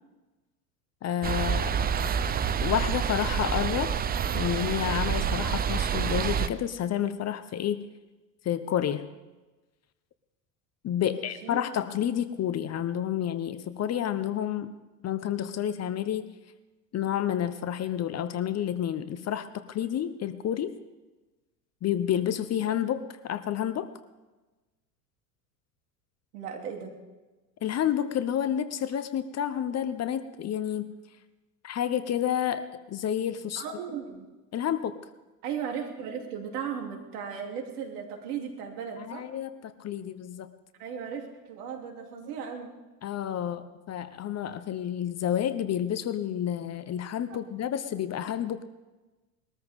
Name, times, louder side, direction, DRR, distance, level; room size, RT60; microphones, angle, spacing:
voice 1, 1.0-2.1 2.6-3.9 4.3-7.9 8.4-9.1 10.8-14.8 15.0-16.3 16.9-20.7 21.8-23.9 27.6-30.9 31.6-33.6 34.5-35.0 39.0-40.5 43.0-48.6, left 10 dB, 30° left, 12 dB, 0.9 m, -30 dB
sound 1, 1.2-6.5, right 7 dB, 20° right, 0.6 m, -28 dB
voice 2, 11.0-11.6 26.3-27.0 33.6-34.3 35.4-39.3 40.8-42.7 47.3-47.4, right 7 dB, 70° right, 2 dB, 3.3 m, -36 dB
22.0 x 13.5 x 3.7 m, 1.2 s
hypercardioid pair, 85°, 49 cm